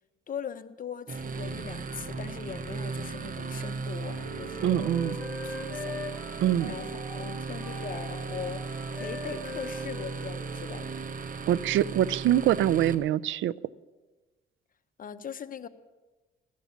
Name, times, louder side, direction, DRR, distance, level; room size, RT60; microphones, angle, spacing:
voice 1, 0.3-4.9 5.4-6.0 6.3-10.9 15.0-15.7, left 7 dB, 45° left, 9 dB, 1.0 m, -40 dB
sound 1, 1.1-12.9, right 4 dB, 45° right, 1.2 m, -36 dB
Wind instrument woodwind instrument, 3.8-11.2, left 3 dB, 10° left, 3.7 m, -42 dB
voice 2, 4.6-5.2 6.4-6.7 11.5-13.5, right 12 dB, 75° right, 21 dB, 0.5 m, -24 dB
15.0 x 13.0 x 7.2 m, 1.2 s
cardioid pair, 90°, 20 cm